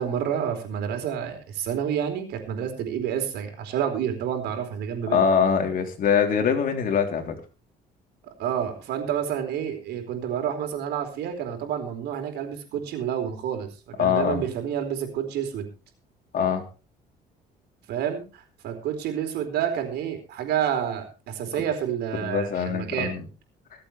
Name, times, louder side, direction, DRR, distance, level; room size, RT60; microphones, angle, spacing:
voice 1, 0.0-5.2 8.4-15.7 17.9-23.1, right 9 dB, 80° right, 5 dB, 4.5 m, -29 dB
voice 2, 5.1-7.3 14.0-14.4 16.3-16.6 22.2-23.3, left 7 dB, 55° left, 4 dB, 3.4 m, -23 dB
25.0 x 8.4 x 3.4 m, 0.33 s
cardioid pair, 110°, 17 cm